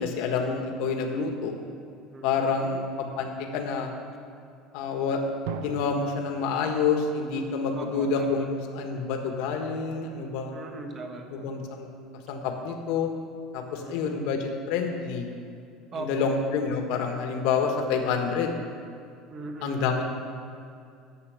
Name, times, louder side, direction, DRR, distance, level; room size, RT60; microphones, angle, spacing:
voice 1, 0.0-1.5 2.2-3.9 4.7-5.2 5.5-10.5 11.3-11.9 12.3-13.1 13.5-15.3 16.0-18.6 19.6-20.0, left 5 dB, 65° left, 3 dB, 1.5 m, -28 dB
voice 2, 2.1-2.8 7.7-8.5 10.5-11.5 13.8-14.2 15.9-16.4 19.3-19.9, right 2 dB, 25° right, 4 dB, 1.3 m, -39 dB
Drum, 5.5-8.2, right 8 dB, 75° right, 0.6 m, -40 dB
11.5 x 8.1 x 6.6 m, 2.4 s
cardioid pair, 165°, 0 cm